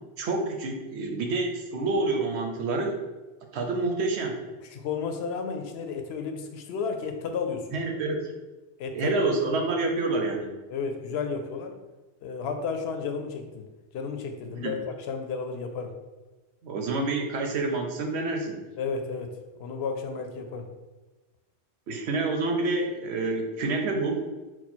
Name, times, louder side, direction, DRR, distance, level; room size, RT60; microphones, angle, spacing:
voice 1, 0.2-2.9 3.5-4.4 7.7-8.3 8.9-10.5 14.5-14.8 16.6-18.6 21.9-24.2, right 3 dB, 80° right, 3 dB, 0.9 m, -28 dB
voice 2, 4.7-7.8 8.8-9.2 10.7-11.7 12.2-13.6 13.9-15.9 18.8-19.3 19.6-20.7, left 5 dB, 75° left, 5 dB, 0.8 m, -32 dB
4.4 x 2.2 x 4.2 m, 1.2 s
omnidirectional pair, 1.1 m